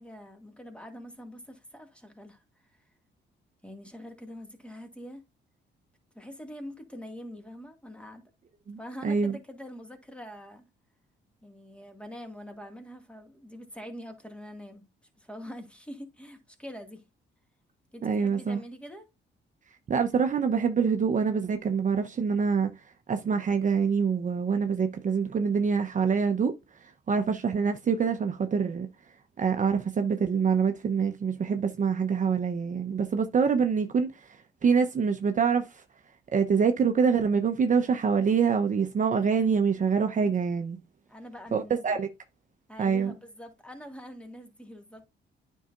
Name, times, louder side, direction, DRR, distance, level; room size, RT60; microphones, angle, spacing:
voice 1, 0.0-2.4 3.6-5.2 6.1-8.2 8.8-10.7 11.4-14.8 15.2-17.0 17.9-19.1 41.1-42.0 42.7-45.1, equal, 5° left, 1.9 m, -44 dB
voice 2, 9.0-9.4 18.0-18.6 19.9-22.7 23.1-26.6 27.1-28.9 29.4-34.1 34.6-35.7 36.3-40.8 41.5-42.1 42.8-43.1, right 6 dB, 40° right, 0.8 m, -25 dB
9.2 x 5.6 x 2.5 m
cardioid pair, 90°, 20 cm